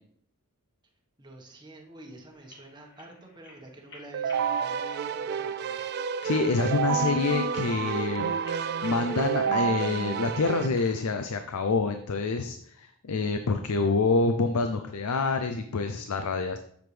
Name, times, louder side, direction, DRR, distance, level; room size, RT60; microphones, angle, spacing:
voice 1, 1.2-5.9, right 1 dB, 20° right, 0 dB, 1.3 m, -48 dB
sound 1, 2.3-11.4, left 2 dB, 50° left, 2.3 m, -54 dB
Keyboard (musical), 4.1-10.7, right 7 dB, 45° right, 0.3 m, -29 dB
voice 2, 6.2-16.6, left 4 dB, 80° left, 8 dB, 0.5 m, -27 dB
7.7 x 7.1 x 3.3 m, 0.67 s
head